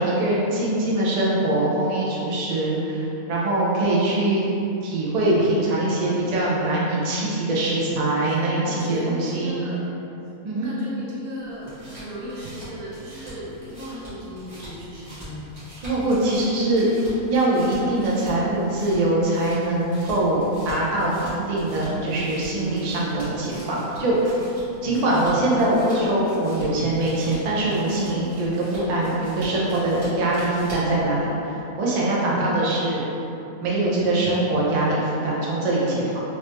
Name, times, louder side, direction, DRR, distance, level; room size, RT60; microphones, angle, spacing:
voice 1, 0.0-4.4 4.8-9.6 10.4-10.7 15.8-16.9 17.3-24.4 24.8-33.0 33.6-36.2, right 1 dB, 55° right, -6 dB, 0.4 m, -23 dB
voice 2, 8.2-9.8 10.5-15.5 24.8-25.4 32.1-32.4, equal, 80° right, -6 dB, 1.3 m, -36 dB
sound 1, 11.4-31.0, equal, 25° right, 1.4 m, -43 dB
3.2 x 3.0 x 2.9 m, 2.8 s
omnidirectional pair, 1.6 m